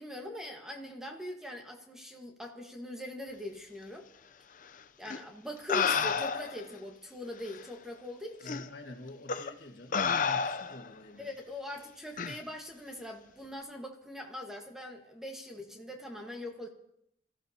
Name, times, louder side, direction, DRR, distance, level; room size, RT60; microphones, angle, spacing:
voice 1, 0.0-4.1 5.0-8.6 11.2-16.7, left 1 dB, 5° right, 1 dB, 1.4 m, -42 dB
sound 1, 5.1-5.2 5.7-6.6 7.5-7.6 8.5-8.6 9.3-9.5 9.9-10.9 12.2-12.4, left 6 dB, 45° left, 0.6 m, -30 dB
voice 2, 8.4-11.3, left 1 dB, 65° left, 4 dB, 1.8 m, -47 dB
26.0 x 14.5 x 2.9 m, 0.73 s
head